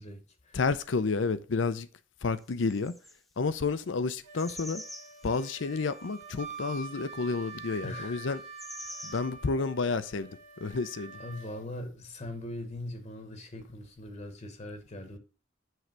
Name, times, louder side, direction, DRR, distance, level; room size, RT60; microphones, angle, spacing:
voice 1, 0.0-0.6 7.8-8.3 8.8-9.1 11.2-15.2, left 1 dB, 40° left, 1.0 m, -41 dB
voice 2, 0.5-1.9 2.2-2.9 3.4-4.8 5.2-8.4 9.0-10.3 10.6-11.2, left 4 dB, 80° left, 0.6 m, -30 dB
sound 1, 2.5-3.2 4.4-5.9 8.4-9.2, equal, ahead, 0.5 m, -44 dB
Wind instrument woodwind instrument, 4.2-11.7, right 4 dB, 35° right, 1.1 m, -46 dB
7.7 x 3.3 x 6.0 m
head